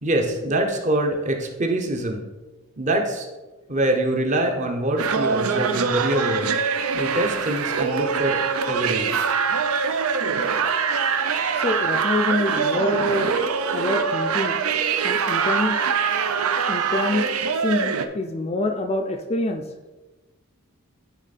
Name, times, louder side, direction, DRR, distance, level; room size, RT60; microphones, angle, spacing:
voice 1, 0.0-2.2 2.8-3.3 3.7-6.5 6.9-9.3, right 1 dB, 35° right, 2 dB, 0.9 m, -24 dB
sound 1, 5.0-18.1, right 6 dB, 75° right, 0.5 m, -23 dB
voice 2, 11.5-13.3 13.7-14.6 15.0-15.8 16.7-17.3 17.6-19.6, left 2 dB, 30° left, 5 dB, 0.4 m, -25 dB
9.9 x 3.6 x 4.2 m, 1.2 s
head